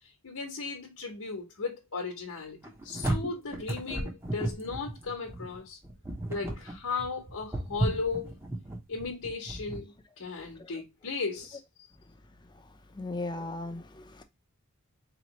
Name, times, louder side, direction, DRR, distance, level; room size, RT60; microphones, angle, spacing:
voice 1, 0.2-2.6 2.8-5.8 6.3-8.3 8.9-11.6, left 4 dB, 80° left, 0.9 m, -36 dB
sound 1, 2.6-9.8, right 1 dB, 10° right, 0.8 m, -34 dB
voice 2, 12.9-14.2, left 2 dB, 20° left, 0.5 m, -37 dB
4.3 x 2.9 x 2.9 m
head